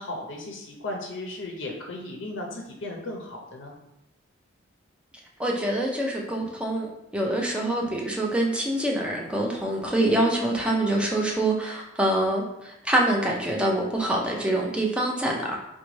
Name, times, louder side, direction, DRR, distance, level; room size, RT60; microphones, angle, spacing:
voice 1, 0.0-3.8, left 2 dB, 65° left, 0 dB, 0.5 m, -36 dB
voice 2, 5.4-15.6, right 1 dB, 5° right, -2 dB, 0.4 m, -25 dB
3.9 x 2.1 x 3.1 m, 0.86 s
head